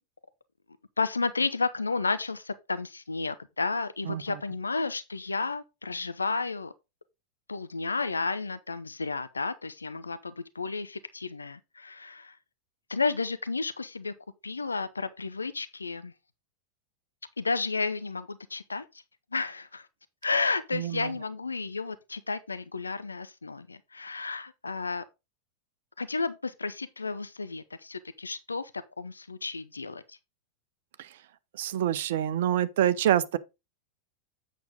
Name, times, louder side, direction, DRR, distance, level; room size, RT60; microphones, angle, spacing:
voice 1, 1.0-6.7 7.5-12.4 12.9-14.1 14.4-16.1 17.4-19.0 19.3-19.9 20.2-25.0 26.0-30.2, left 4 dB, 80° left, 0.5 m, -32 dB
voice 2, 20.7-21.1 31.0-31.1 31.6-33.4, right 11 dB, 55° right, 0.6 m, -26 dB
8.3 x 6.4 x 3.7 m
figure-of-eight pair, 90°, 0 cm